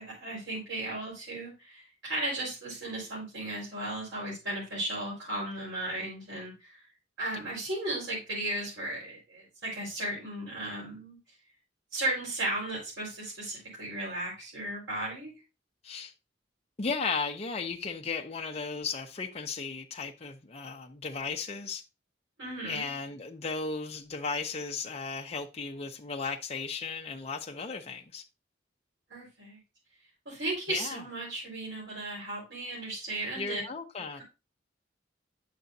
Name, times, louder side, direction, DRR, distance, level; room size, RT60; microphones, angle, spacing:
voice 1, 0.0-6.8 7.2-11.2 11.9-15.3 22.4-22.8 29.1-29.6 30.2-33.6, right 1 dB, 75° right, 4.7 m, -35 dB
voice 2, 16.8-21.8 22.6-28.2 30.7-31.0 33.3-34.2, left 4 dB, 35° left, 0.6 m, -35 dB
9.2 x 6.7 x 2.7 m
head